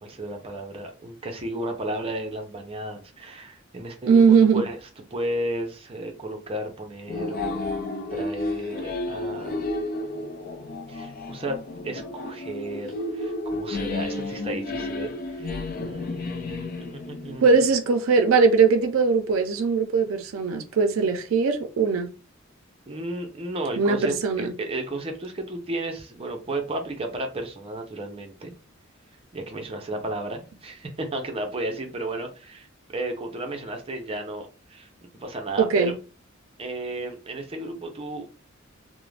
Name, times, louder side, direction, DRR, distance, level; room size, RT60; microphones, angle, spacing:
voice 1, 0.0-4.8 5.1-7.7 8.1-9.7 10.9-11.6 11.8-17.6 22.9-28.5 29.3-36.0 36.6-38.3, right 1 dB, 30° right, 0.6 m, -33 dB
voice 2, 4.1-4.6 17.4-22.1 23.7-24.5 35.6-35.9, right 5 dB, 85° right, 0.4 m, -20 dB
sound 1, 7.1-17.7, left 2 dB, 45° left, 0.4 m, -32 dB
2.4 x 2.1 x 3.2 m
head